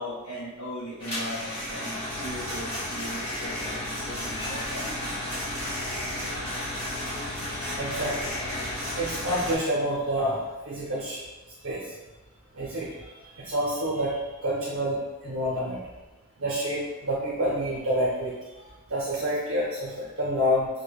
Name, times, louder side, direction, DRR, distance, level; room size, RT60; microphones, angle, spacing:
voice 1, 0.0-5.3, equal, 60° left, -10 dB, 0.8 m, -38 dB
sound 1, 1.0-9.6, left 1 dB, 25° left, 1.3 m, -33 dB
voice 2, 4.3-4.6 7.8-8.3 9.0-11.2 11.6-11.9 12.5-15.8 16.4-20.7, equal, 60° right, -6 dB, 0.6 m, -28 dB
5.1 x 2.1 x 2.3 m, 1.1 s
head